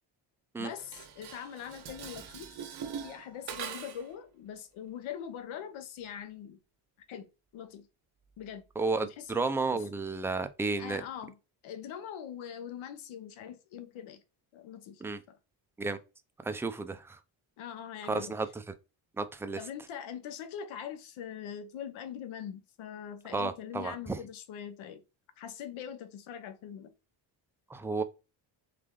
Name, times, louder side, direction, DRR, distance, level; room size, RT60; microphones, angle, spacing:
voice 1, 0.6-2.6 3.0-6.6 7.1-7.9 8.4-8.7 9.0-9.8 10.8-11.3 11.6-14.2 14.5-15.4 17.6-18.3 19.6-25.0 25.4-26.9, left 9 dB, 80° left, 1.0 m, -42 dB
Dishes pots and pans, 0.8-4.1, right 7 dB, 55° right, 0.9 m, -42 dB
voice 2, 8.8-11.0 15.0-15.2 15.8-16.0 16.4-17.2 18.1-18.5 19.2-19.6 23.3-24.2 27.7-28.0, right 3 dB, 5° right, 0.3 m, -32 dB
3.8 x 3.3 x 3.7 m
cardioid pair, 105°, 47 cm